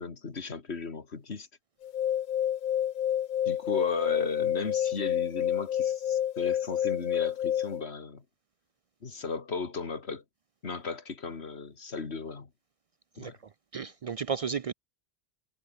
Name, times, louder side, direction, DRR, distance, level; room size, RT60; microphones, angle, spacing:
voice 1, 0.0-1.5 3.4-8.2 9.0-10.2 10.6-12.5 13.2-13.3, left 4 dB, 75° left, 2.2 m, -35 dB
sound 1, 1.8-7.8, left 10 dB, 55° left, 0.6 m, -29 dB
voice 2, 13.1-14.7, right 6 dB, 60° right, 0.3 m, -34 dB
omnidirectional pair, 1.1 m